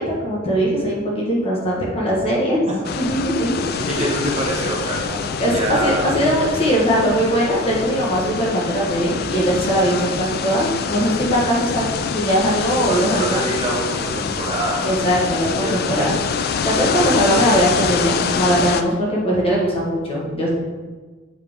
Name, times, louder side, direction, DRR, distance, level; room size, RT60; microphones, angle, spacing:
voice 1, 0.0-2.7 2.9-4.1 5.4-13.4 14.8-16.1 16.6-20.6, equal, 30° left, -4 dB, 1.5 m, -20 dB
sound 1, 2.8-18.8, left 6 dB, 50° left, 0.4 m, -25 dB
voice 2, 3.9-6.2 9.8-10.2 12.9-16.2, right 1 dB, 30° right, -2 dB, 1.1 m, -26 dB
7.5 x 4.3 x 3.7 m, 1.3 s
head